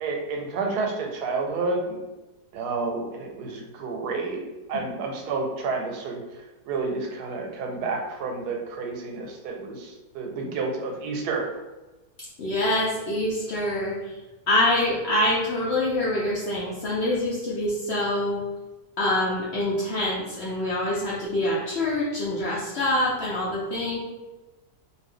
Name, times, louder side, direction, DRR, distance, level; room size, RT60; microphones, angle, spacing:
voice 1, 0.0-2.0 2.5-4.4 4.7-6.2 6.7-11.4, right 3 dB, 85° right, 1 dB, 1.2 m, -30 dB
voice 2, 12.4-14.1 14.5-18.4 19.0-24.0, left 1 dB, 60° left, -6 dB, 0.7 m, -25 dB
2.6 x 2.4 x 3.5 m, 1.1 s
omnidirectional pair, 1.7 m